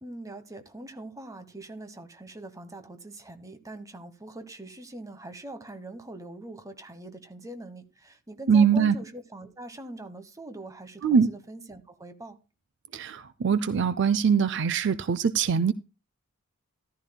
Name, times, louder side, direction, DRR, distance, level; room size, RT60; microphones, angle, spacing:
voice 1, 0.0-12.4, right 1 dB, 15° right, 1.1 m, -43 dB
voice 2, 8.5-8.9 11.0-11.3 12.9-15.7, right 6 dB, 55° right, 0.4 m, -22 dB
14.0 x 12.0 x 2.2 m
head